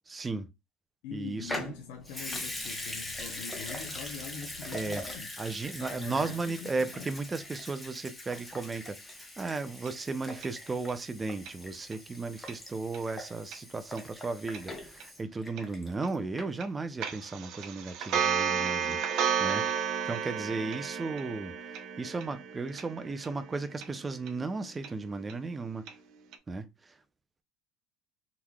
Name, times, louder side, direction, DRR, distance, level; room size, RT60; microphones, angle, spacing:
voice 1, 0.1-0.5 1.1-1.7 4.7-5.1 5.4-19.0 19.4-21.5 22.0-25.9 26.5-26.9, right 3 dB, 15° right, 0.4 m, -35 dB
voice 2, 1.0-5.3 5.8-7.1, left 6 dB, 80° left, 0.7 m, -43 dB
Water tap faucet / Sink (filling or washing) / Liquid, 1.4-16.1 16.4-16.5, left 1 dB, 10° left, 0.9 m, -42 dB
sound 1, 9.9-10.0 10.4-10.5 10.9-11.0 11.5-11.6 11.9-12.0 12.5-12.6 12.9-13.0 13.5-13.6 14.0-14.1 14.5-14.6 15.0-15.1 15.6-15.7 16.0-16.1 16.6-16.7 17.0-25.9 26.3-26.4, right 7 dB, 55° right, 0.6 m, -33 dB
3.8 x 3.1 x 2.3 m
cardioid pair, 135°, 0 cm